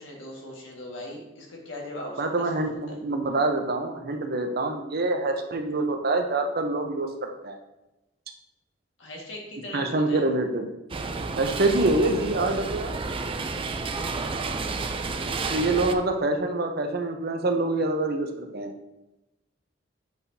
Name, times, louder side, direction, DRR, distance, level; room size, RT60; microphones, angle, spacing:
voice 1, 0.0-3.0 9.0-10.2, left 1 dB, 85° left, -1 dB, 1.8 m, -40 dB
voice 2, 2.2-7.6 9.7-10.7 11.4-12.9 15.5-18.7, right 2 dB, 55° right, 5 dB, 0.8 m, -26 dB
sound 1, 10.9-15.9, right 3 dB, 30° right, 0.4 m, -31 dB
7.9 x 5.7 x 2.8 m, 0.96 s
head